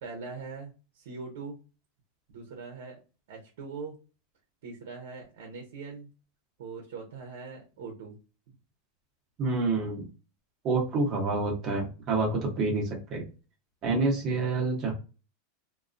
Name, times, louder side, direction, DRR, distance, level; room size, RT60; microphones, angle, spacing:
voice 1, 0.0-1.6 2.3-3.0 3.3-4.0 4.6-6.1 6.6-8.2 14.2-14.4, right 4 dB, 75° right, 1 dB, 0.8 m, -41 dB
voice 2, 9.4-10.1 10.6-13.3 13.8-14.9, right 3 dB, 30° right, 0 dB, 0.9 m, -28 dB
2.3 x 2.1 x 2.5 m, 0.33 s
supercardioid pair, 160°, 0 cm